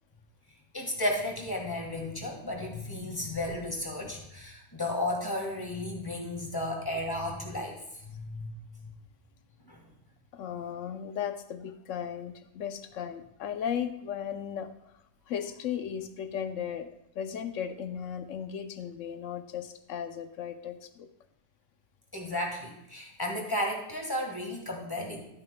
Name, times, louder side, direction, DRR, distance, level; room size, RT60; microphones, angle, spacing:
voice 1, 0.7-7.8 8.0-8.6 8.8-8.9 9.7-9.8 22.1-25.3, left 1 dB, 15° left, 0 dB, 1.6 m, -33 dB
voice 2, 10.3-14.7 15.3-16.9 17.1-21.1, left 8 dB, 75° left, 9 dB, 1.0 m, -36 dB
12.5 x 8.7 x 2.2 m, 0.83 s
omnidirectional pair, 1.3 m